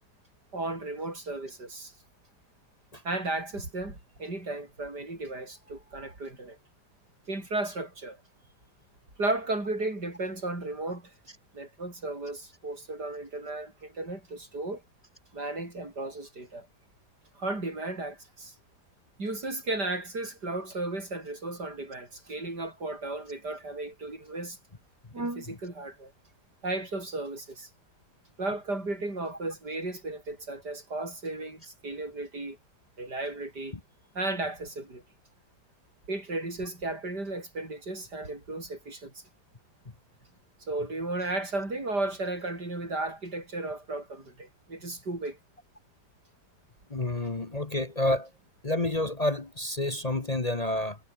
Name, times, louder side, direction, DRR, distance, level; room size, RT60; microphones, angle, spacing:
voice 1, 0.5-1.9 3.0-6.6 7.3-8.2 9.2-11.1 11.5-14.8 15.3-16.7 17.4-18.5 19.2-24.6 25.1-26.1 26.6-27.7 28.4-32.6 33.0-33.7 34.1-35.0 36.1-39.1 40.7-45.4, right 2 dB, 85° right, 7.6 m, -34 dB
voice 2, 46.9-48.3 48.6-51.0, left 1 dB, 25° left, 1.4 m, -29 dB
omnidirectional pair, 1.7 m